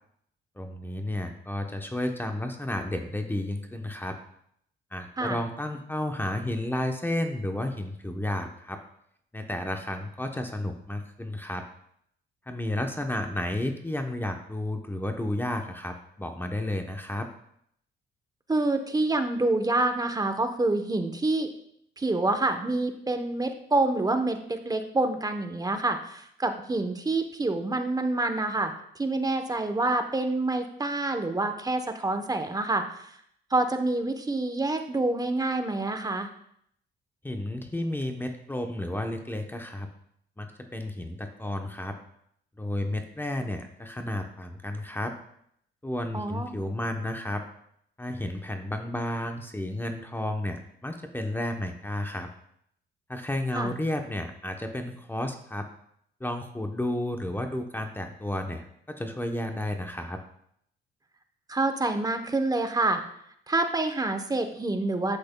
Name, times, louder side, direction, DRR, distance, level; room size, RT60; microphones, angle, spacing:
voice 1, 0.6-4.2 4.9-8.8 9.3-11.6 12.5-17.3 37.2-39.9 40.4-42.0 42.6-45.1 45.8-47.4 48.0-52.3 53.1-55.7 56.2-60.2, left 1 dB, 10° left, 4 dB, 0.9 m, -32 dB
voice 2, 18.5-21.5 22.0-33.1 33.5-36.3 46.1-46.6 53.5-53.7 61.5-63.0 63.5-65.2, right 2 dB, 20° right, 7 dB, 0.9 m, -27 dB
10.5 x 7.6 x 2.2 m, 0.70 s
cardioid pair, 90°, 20 cm